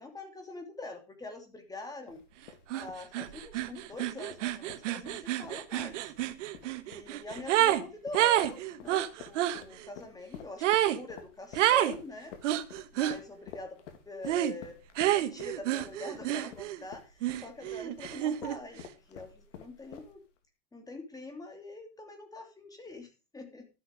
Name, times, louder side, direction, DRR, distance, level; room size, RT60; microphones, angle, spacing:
voice 1, 0.0-2.2 2.7-6.1 6.9-10.6 10.9-12.3 12.9-13.8 14.1-14.8 15.1-20.2 20.7-23.6, left 2 dB, 10° left, 5 dB, 2.9 m, -44 dB
sound 1, 2.1-20.4, left 9 dB, 85° left, 2.6 m, -50 dB
sound 2, 2.7-2.9 3.1-7.8 8.1-9.6 10.6-11.0 11.6-12.0 12.4-13.2 14.3-14.6 15.0-16.8 17.2-18.6, right 13 dB, 85° right, 1.3 m, -29 dB
12.5 x 7.9 x 5.2 m, 0.31 s
supercardioid pair, 140°, 36 cm